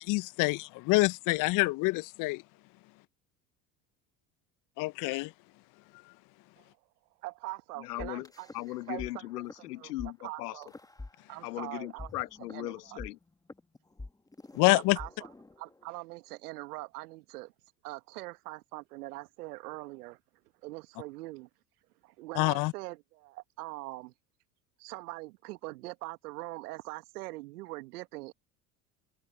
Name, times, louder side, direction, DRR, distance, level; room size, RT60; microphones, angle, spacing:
voice 1, 0.0-2.4 4.8-5.3 14.5-15.0 22.4-22.7, left 23 dB, 45° left, 0.6 m, -26 dB
voice 2, 7.2-8.5 8.9-9.3 9.8-9.9 10.2-10.7 11.3-12.1 12.5-13.0 14.7-15.3 15.6-17.5 17.8-20.2 20.6-21.5 22.0-24.1 24.8-28.3, right 20 dB, 75° right, 1.4 m, -42 dB
voice 3, 7.8-8.3 8.5-10.6 11.4-13.2, left 17 dB, 75° left, 1.2 m, -38 dB
sound 1, 8.0-9.1 9.4-9.6 10.0-10.1 10.6-11.6 12.0-16.0, left 2 dB, 10° left, 1.1 m, -46 dB
hypercardioid pair, 80°, 47 cm